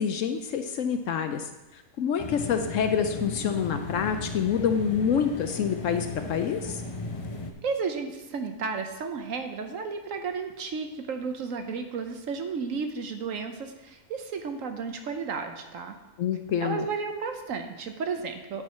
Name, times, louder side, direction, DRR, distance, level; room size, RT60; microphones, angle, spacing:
voice 1, 0.0-6.8 16.2-16.9, left 7 dB, 65° left, 7 dB, 0.9 m, -27 dB
sound 1, 2.2-7.5, left 3 dB, 40° left, 0.5 m, -36 dB
voice 2, 7.6-16.0 16.6-18.6, right 5 dB, 65° right, 6 dB, 1.1 m, -33 dB
9.4 x 4.7 x 5.5 m, 1.0 s
omnidirectional pair, 1.6 m